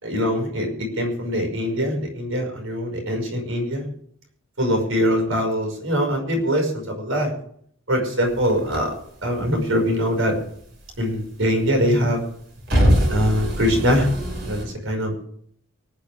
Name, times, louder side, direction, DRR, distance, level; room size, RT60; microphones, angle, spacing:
voice 1, 0.0-3.9 4.6-7.3 7.9-8.9 9.2-10.3 11.0-12.2 13.1-14.1 14.4-15.2, equal, 75° right, 2 dB, 5.5 m, -23 dB
sound 1, 8.3-10.0 10.3-11.6 12.0-14.6, equal, 55° right, 5.6 m, -23 dB
24.0 x 9.6 x 3.5 m, 0.63 s
head